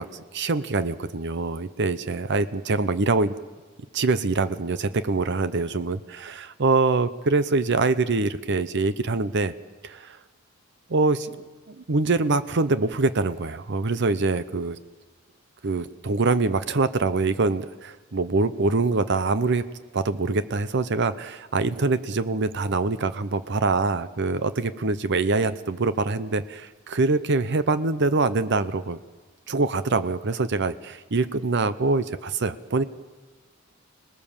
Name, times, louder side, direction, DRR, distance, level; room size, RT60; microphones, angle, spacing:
voice 1, 0.0-3.3 3.9-9.5 9.8-10.2 10.9-14.8 15.6-19.6 19.9-29.0 29.5-32.8, right 3 dB, 55° right, 13 dB, 0.8 m, -24 dB
27.0 x 19.0 x 7.2 m, 1.3 s
head